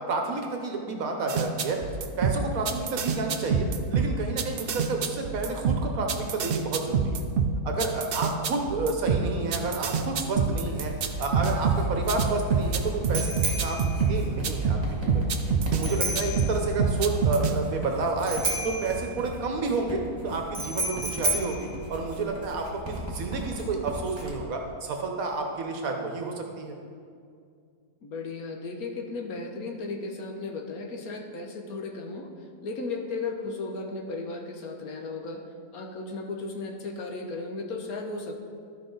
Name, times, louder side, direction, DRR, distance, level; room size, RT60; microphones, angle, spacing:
voice 1, 0.0-1.8 2.2-7.2 7.6-15.4 15.7-26.7, right 3 dB, 65° right, 2 dB, 1.2 m, -30 dB
sound 1, 1.3-15.8 16.1-17.5, right 5 dB, 85° right, 0.5 m, -26 dB
Writing, 9.7-24.4, equal, 15° right, 1.4 m, -38 dB
Bicycle bell, 11.5-22.6, right 1 dB, 35° right, 1.5 m, -34 dB
voice 2, 28.0-32.3 32.6-35.4 35.7-38.4, left 3 dB, 70° left, 3 dB, 1.3 m, -35 dB
13.0 x 5.4 x 3.9 m, 2.3 s
omnidirectional pair, 1.7 m